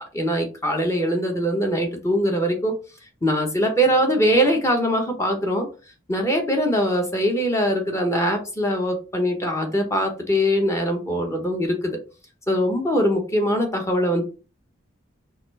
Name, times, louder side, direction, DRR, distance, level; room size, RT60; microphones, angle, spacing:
voice 1, 0.1-2.8 3.2-5.7 6.1-12.0 12.5-14.2, equal, 15° left, 3 dB, 0.9 m, -22 dB
4.2 x 2.5 x 4.0 m, 0.33 s
head